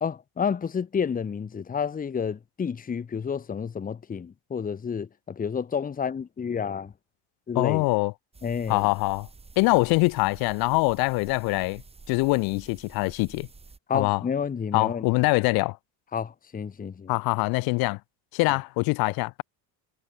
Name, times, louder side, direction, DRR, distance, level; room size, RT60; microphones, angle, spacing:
voice 1, 0.0-6.9 7.5-7.9 8.4-8.9 13.9-15.1 16.1-17.1 18.5-18.6, left 6 dB, 20° left, 1.8 m, -30 dB
voice 2, 7.6-8.1 8.7-9.3 9.6-11.8 12.1-13.5 13.9-14.2 14.7-15.8 17.1-18.0 18.3-19.4, left 25 dB, 55° left, 0.6 m, -24 dB
sound 1, 8.3-13.8, right 4 dB, 15° right, 5.8 m, -50 dB
cardioid pair, 160°, 45 cm